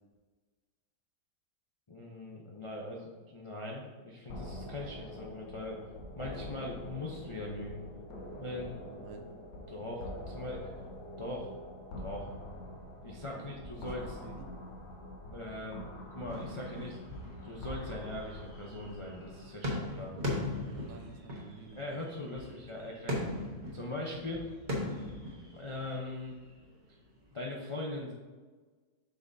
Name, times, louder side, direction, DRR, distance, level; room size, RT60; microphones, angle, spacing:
voice 1, 1.9-5.9 6.2-7.8 8.4-8.8 9.7-10.7 11.2-11.5 12.0-12.3 13.0-14.2 15.3-17.0 17.4-20.1 21.7-23.2 23.7-24.5 25.5-26.4 27.3-28.1, left 2 dB, 45° left, -3 dB, 0.4 m, -40 dB
sound 1, 4.3-19.5, left 1 dB, 75° left, 1.6 m, -45 dB
voice 2, 8.9-9.3 13.3-14.5 20.6-22.0 22.5-23.0, right 5 dB, 70° right, 5 dB, 1.3 m, -52 dB
sound 2, 16.3-26.6 27.1-27.4, left 1 dB, 30° right, 1.2 m, -40 dB
7.8 x 5.8 x 2.7 m, 1.4 s
omnidirectional pair, 1.9 m